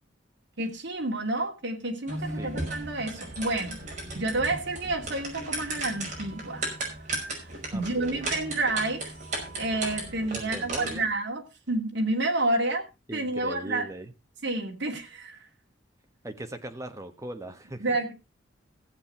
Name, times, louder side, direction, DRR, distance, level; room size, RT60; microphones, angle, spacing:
voice 1, 0.6-3.8 4.1-6.6 7.2-7.3 7.7-9.1 9.6-12.9 13.1-13.9 14.4-15.4 17.8-18.1, right 2 dB, 65° right, 2.5 m, -29 dB
sound 1, 2.1-11.1, right 2 dB, 40° right, 5.3 m, -36 dB
voice 2, 7.7-8.2 10.3-11.1 13.1-14.1 16.2-18.0, right 1 dB, 15° right, 1.4 m, -39 dB
15.0 x 8.1 x 4.4 m
head